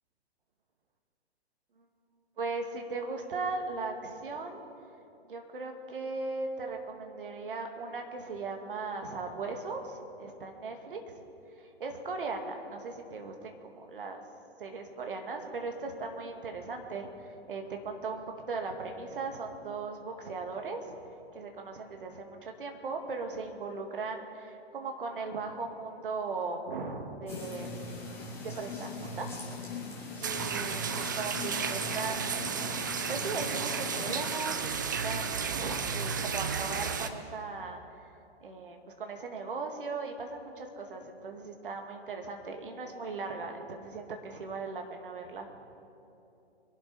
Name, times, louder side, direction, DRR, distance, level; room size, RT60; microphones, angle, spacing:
voice 1, 2.4-4.6 5.3-11.0 11.6-14.2 14.6-17.1 17.5-20.9 21.3-27.7 28.6-29.5 30.2-32.8 33.1-37.8 38.4-45.5, right 4 dB, 55° right, 3 dB, 2.2 m, -38 dB
sound 1, 27.3-34.2, left 2 dB, 5° left, 3.0 m, -40 dB
sound 2, 30.2-37.1, right 6 dB, 20° right, 0.4 m, -33 dB
24.0 x 11.5 x 4.2 m, 2.8 s
figure-of-eight pair, 125°, 33 cm